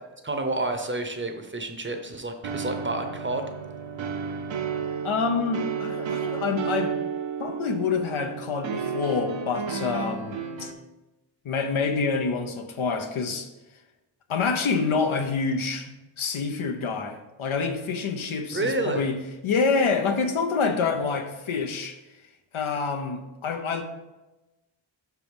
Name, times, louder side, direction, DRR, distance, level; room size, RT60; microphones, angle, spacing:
voice 1, 0.2-3.5 18.5-19.1, right 2 dB, 25° right, 6 dB, 0.7 m, -29 dB
sound 1, 2.4-10.7, right 6 dB, 70° right, 0.8 m, -32 dB
voice 2, 5.0-6.9 7.4-10.7 11.4-13.5 14.3-19.2 19.4-22.0 22.5-23.8, left 4 dB, 85° left, 6 dB, 0.9 m, -27 dB
5.8 x 4.7 x 5.2 m, 1.0 s
wide cardioid pair, 120°, 47 cm